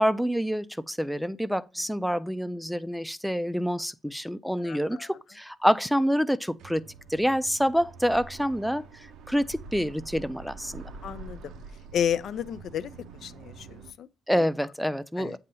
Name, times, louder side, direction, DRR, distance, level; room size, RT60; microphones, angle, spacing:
voice 1, 0.0-6.8 7.1-10.8 14.3-15.4, equal, ahead, 0.4 m, -27 dB
voice 2, 4.6-5.1 11.0-11.5 11.9-12.9 13.2-14.5 15.2-15.4, left 9 dB, 70° left, 0.4 m, -32 dB
sound 1, 6.6-13.9, right 4 dB, 85° right, 0.6 m, -46 dB
7.9 x 2.7 x 5.5 m
cardioid pair, 90°, 0 cm